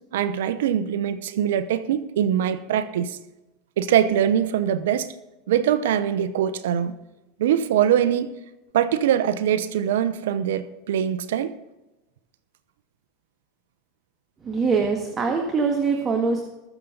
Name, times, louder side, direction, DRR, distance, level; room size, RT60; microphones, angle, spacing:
voice 1, 0.1-3.2 3.8-5.1 5.5-7.0 7.4-8.3 8.7-11.5, right 9 dB, 85° right, 0.8 m, -22 dB
voice 2, 14.4-16.4, right 4 dB, 25° right, 1.7 m, -23 dB
21.0 x 7.2 x 4.0 m
supercardioid pair, 115°, 0 cm